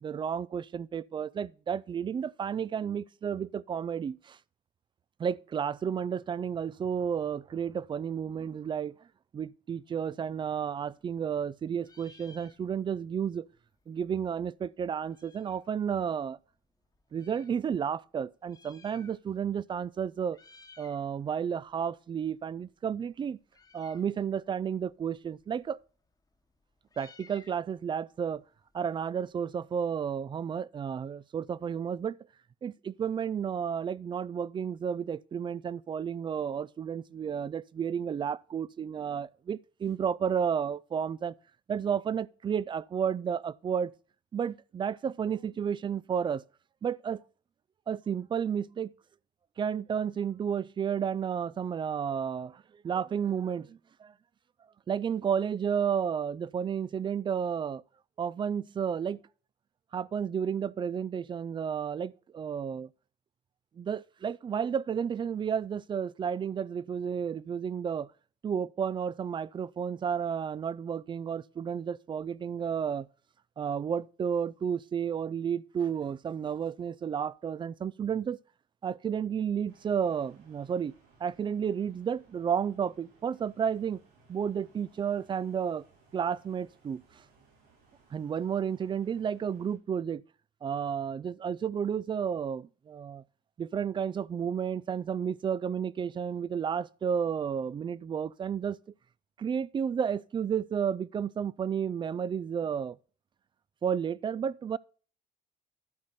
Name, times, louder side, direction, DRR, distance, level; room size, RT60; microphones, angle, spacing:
voice 1, 0.0-4.4 5.2-8.9 9.3-13.5 13.9-16.4 17.1-20.4 20.8-23.4 23.7-25.8 27.0-28.4 28.7-32.2 32.6-41.3 41.7-43.9 44.3-46.4 46.8-47.2 47.9-48.9 49.6-54.1 54.9-57.8 58.2-59.2 59.9-62.9 63.8-68.1 68.4-73.1 73.6-78.4 78.8-80.9 81.2-84.0 84.3-85.8 86.1-87.0 88.1-90.2 90.6-93.2 93.6-98.8 99.4-103.0 103.8-104.8, right 7 dB, 30° right, 0.4 m, -32 dB
Meow, 10.5-11.5 11.8-13.0 13.3-13.4 13.6-15.7 16.4-17.6 18.3-19.5 19.8-20.0 20.3-21.0 21.4-29.3, left 4 dB, 20° left, 1.2 m, -59 dB
sound 1, 79.7-89.8, right 4 dB, 90° right, 4.5 m, -63 dB
12.0 x 4.2 x 7.8 m
cardioid pair, 110°, 17 cm